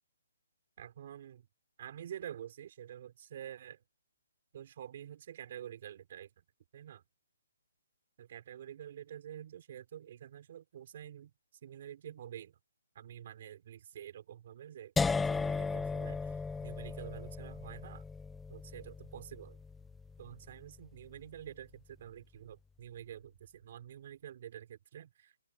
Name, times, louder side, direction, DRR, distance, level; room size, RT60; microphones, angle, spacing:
voice 1, 0.8-1.5 1.8-3.8 4.5-6.3 6.7-7.0 8.2-11.3 11.6-12.6 12.9-16.3 16.6-18.0 18.5-19.6 20.2-25.4, right 10 dB, 35° right, 6.0 m, -48 dB
sound 1, 15.0-20.9, left 4 dB, 5° left, 0.5 m, -36 dB
open air
hypercardioid pair, 180°, 0 cm